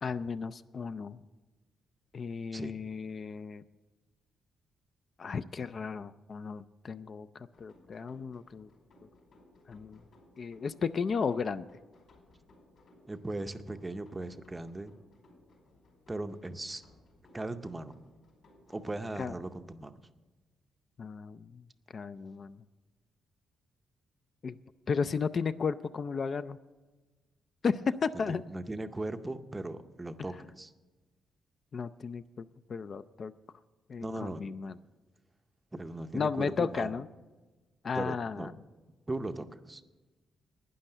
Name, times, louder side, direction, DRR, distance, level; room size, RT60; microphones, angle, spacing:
voice 1, 0.0-1.2 2.1-3.6 5.2-7.3 7.6-8.7 9.7-10.0 10.4-11.7 19.2-19.3 21.0-21.6 21.9-22.6 24.4-24.6 24.9-26.6 27.6-28.4 31.7-32.2 32.7-33.3 33.9-34.7 36.1-37.0 37.8-38.5, left 5 dB, 40° left, 13 dB, 0.3 m, -34 dB
sound 1, 7.5-20.0, left 1 dB, 60° left, 4.8 m, -61 dB
voice 2, 13.1-15.0 16.1-16.8 17.3-18.0 18.7-20.0 28.3-30.7 34.0-34.4 35.7-37.0 37.9-38.5 39.1-39.8, right 2 dB, 15° right, 9 dB, 0.6 m, -38 dB
11.5 x 9.8 x 6.6 m, 1.2 s
cardioid pair, 145°, 0 cm